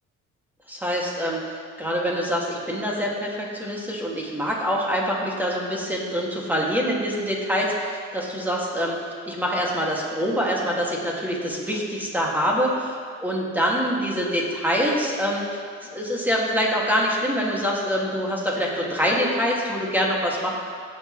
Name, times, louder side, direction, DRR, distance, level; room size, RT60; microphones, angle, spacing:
voice 1, 0.7-1.4 1.8-9.0 9.2-15.6 15.9-20.5, equal, 5° right, -4 dB, 2.4 m, -25 dB
17.0 x 6.9 x 3.3 m, 2.1 s
cardioid pair, 90°, 30 cm